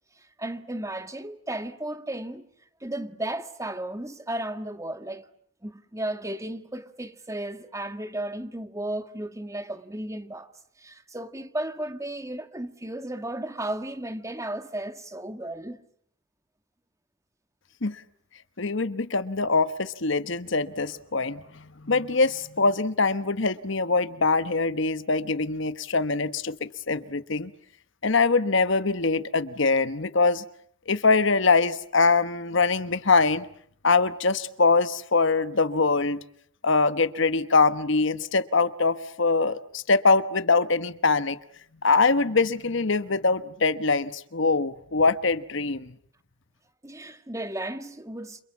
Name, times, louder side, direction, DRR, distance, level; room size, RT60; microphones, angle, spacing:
voice 1, 0.2-2.5 2.8-5.3 5.6-10.5 10.8-15.8 46.8-48.4, right 1 dB, 15° right, 1.7 m, -34 dB
voice 2, 18.6-27.5 28.0-30.4 30.9-33.4 33.8-36.2 36.6-41.4 41.8-45.9, left 4 dB, 60° left, 1.2 m, -23 dB
29.5 x 28.0 x 7.3 m
head